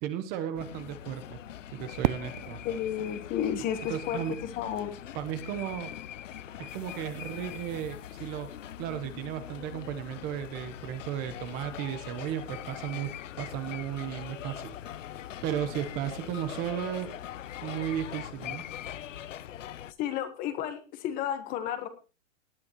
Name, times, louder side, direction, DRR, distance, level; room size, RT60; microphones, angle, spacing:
voice 1, 0.0-1.4 1.7-2.6 3.9-4.4 5.1-5.9 6.6-8.5 8.8-13.1 13.4-14.8 15.4-17.2 17.6-18.6, right 10 dB, 25° right, 10 dB, 1.1 m, -35 dB
sound 1, 0.5-19.9, left 11 dB, 90° left, 0.9 m, -42 dB
Fireworks, 2.0-4.9, right 13 dB, 55° right, 0.5 m, -35 dB
voice 2, 2.6-4.2 4.6-5.0 20.0-21.9, left 9 dB, 25° left, 10 dB, 1.4 m, -32 dB
18.5 x 9.6 x 3.1 m, 0.32 s
hypercardioid pair, 160°, 36 cm